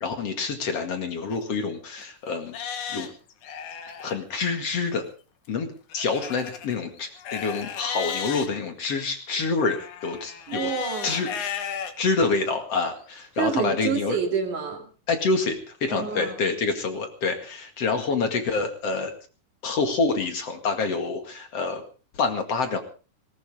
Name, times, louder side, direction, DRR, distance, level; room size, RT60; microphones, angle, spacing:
voice 1, 0.0-2.5 2.9-3.1 4.0-5.0 5.5-5.7 5.9-10.7 11.0-14.2 15.1-19.1 19.6-21.8 22.1-22.8, left 4 dB, 50° left, 6 dB, 2.9 m, -27 dB
Livestock farm animals working animals, 1.3-1.4 2.0-2.1 2.5-4.2 5.9-8.5 9.6-11.9 12.5-12.6 13.2-13.3, left 8 dB, 70° left, 3.0 m, -34 dB
voice 2, 10.5-11.3 13.4-14.9 15.9-16.6, right 6 dB, 70° right, 4 dB, 4.2 m, -28 dB
19.0 x 19.0 x 3.6 m, 0.36 s
omnidirectional pair, 3.7 m